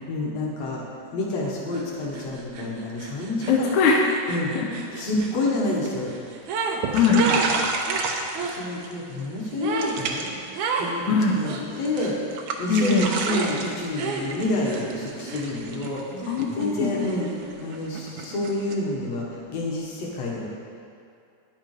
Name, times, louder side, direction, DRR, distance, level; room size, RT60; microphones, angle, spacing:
voice 1, 0.1-0.8 1.1-3.7 4.3-4.5 4.9-6.1 7.1-7.4 8.4-10.4 10.8-16.0 16.6-17.3 17.6-20.5, left 2 dB, 60° left, -3 dB, 2.4 m, -29 dB
sound 1, 1.7-1.8 2.1-6.8 7.1-8.6 9.6-10.0 10.5-10.9 11.4-12.2 13.2-13.5 13.9-15.8 16.2-17.6, right 4 dB, 85° right, 2.4 m, -33 dB
voice 2, 3.5-4.1 4.6-5.0 6.9-7.3 11.1-11.4 12.7-13.1 16.1-16.9, left 4 dB, 80° left, 0 dB, 2.1 m, -21 dB
sound 2, 5.3-5.6 5.8-6.3 6.6-6.7 6.8-8.9 9.2-9.5 9.8-10.4 10.7-11.5 11.8-12.0 12.3-18.7, right 4 dB, 70° right, 1.5 m, -31 dB
10.0 x 7.5 x 4.8 m, 2.5 s
omnidirectional pair, 3.5 m